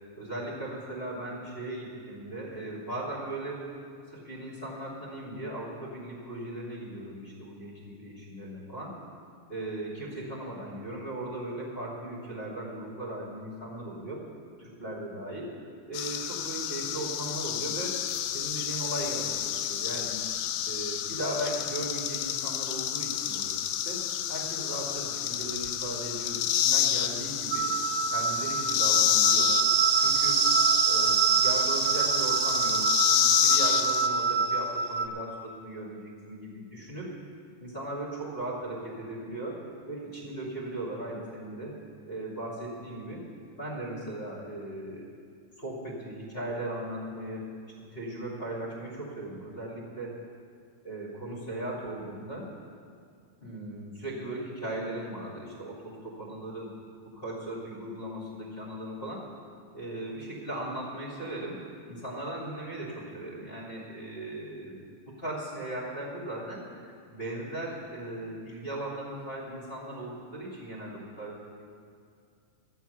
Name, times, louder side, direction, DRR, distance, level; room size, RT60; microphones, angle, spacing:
voice 1, 0.1-3.7 4.1-9.0 9.5-14.2 14.6-18.0 18.3-20.2 20.6-23.5 23.8-24.0 24.3-27.7 28.0-29.6 30.0-30.4 30.9-37.1 37.6-39.6 39.9-41.7 42.1-43.2 43.6-45.0 45.6-47.5 47.9-50.1 50.8-52.5 53.4-56.7 57.2-59.2 59.7-64.8 65.1-71.4, right 1 dB, 20° left, -5 dB, 2.3 m, -38 dB
sound 1, 15.9-34.1, left 11 dB, 90° left, 2.2 m, -29 dB
sound 2, 27.5-35.1, right 7 dB, 80° right, 1.6 m, -26 dB
13.0 x 7.8 x 8.2 m, 2.3 s
omnidirectional pair, 3.7 m